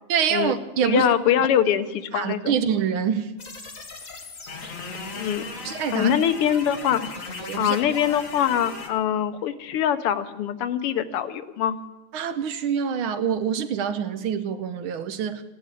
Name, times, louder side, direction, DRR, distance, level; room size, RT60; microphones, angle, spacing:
voice 1, 0.1-1.1 2.1-3.3 5.6-6.1 7.4-7.8 12.1-15.4, right 7 dB, 70° right, 1.7 m, -25 dB
voice 2, 0.8-2.6 5.2-7.1 7.6-11.8, left 9 dB, 90° left, 1.8 m, -23 dB
sound 1, 3.4-8.9, left 4 dB, 40° left, 1.8 m, -37 dB
15.5 x 11.0 x 8.4 m
omnidirectional pair, 2.4 m